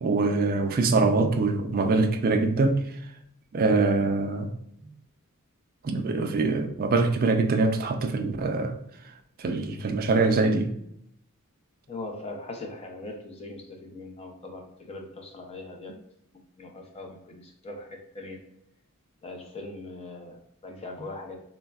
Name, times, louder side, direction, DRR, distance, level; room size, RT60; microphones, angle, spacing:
voice 1, 0.0-2.8 3.5-4.5 5.8-8.8 9.4-10.7, right 3 dB, 40° right, 0.3 m, -24 dB
voice 2, 11.9-15.9 16.6-18.5 19.2-21.4, left 2 dB, 30° left, 0.4 m, -40 dB
3.4 x 2.0 x 2.3 m
head